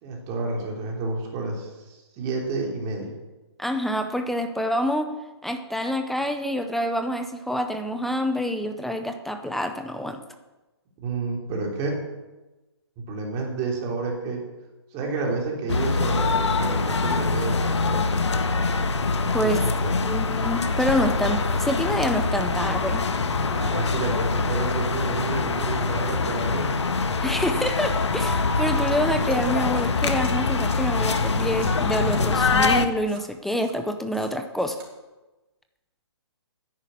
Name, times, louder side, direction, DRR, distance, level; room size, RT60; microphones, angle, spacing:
voice 1, 0.0-3.1 11.0-12.0 13.1-14.4 14.9-18.1 19.1-20.0 23.5-26.7, right 3 dB, 25° right, -1 dB, 3.4 m, -30 dB
voice 2, 3.6-5.1 5.4-10.2 19.3-19.6 20.0-23.1 27.2-34.8, equal, ahead, 7 dB, 0.5 m, -27 dB
sound 1, 15.7-32.9, left 4 dB, 80° left, 1.4 m, -24 dB
sound 2, 28.9-29.0 29.3-29.8 30.2-30.3 30.7-30.8 31.1-31.2 31.6-31.7 32.1-32.2 32.6-32.7 33.1-33.7 34.1-34.3 34.6-34.9, right 5 dB, 55° right, 4.8 m, -47 dB
10.5 x 9.7 x 8.4 m, 1.1 s
hypercardioid pair, 155°, 15 cm